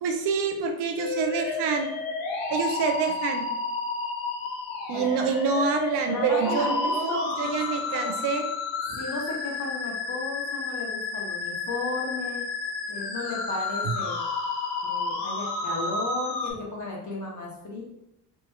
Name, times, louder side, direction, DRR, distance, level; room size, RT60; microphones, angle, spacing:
voice 1, 0.0-1.9 2.5-3.5 4.9-8.5 13.8-13.9, right 6 dB, 65° right, 4 dB, 0.6 m, -27 dB
sound 1, 1.0-16.5, left 4 dB, 70° left, 0.8 m, -31 dB
voice 2, 6.1-8.1 9.0-12.4 12.9-14.2 14.8-17.8, left 3 dB, 40° left, -3 dB, 1.3 m, -34 dB
3.4 x 2.9 x 2.3 m, 0.84 s
supercardioid pair, 70°, 44 cm